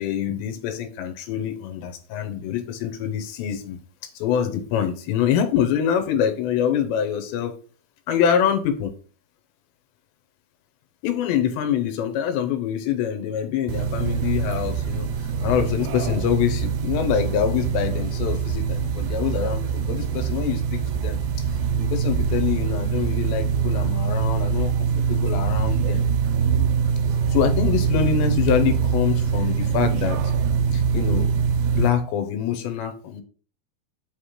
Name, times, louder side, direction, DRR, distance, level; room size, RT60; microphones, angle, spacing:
voice 1, 0.0-3.8 4.1-7.5 8.1-8.9 11.0-15.1 15.4-21.5 21.8-24.7 25.1-26.0 27.3-30.2 30.7-31.3 31.7-33.2, left 9 dB, 80° left, 7 dB, 3.1 m, -25 dB
sound 1, 13.7-31.9, right 6 dB, 80° right, 2.9 m, -23 dB
8.4 x 3.3 x 5.7 m, 0.39 s
omnidirectional pair, 5.1 m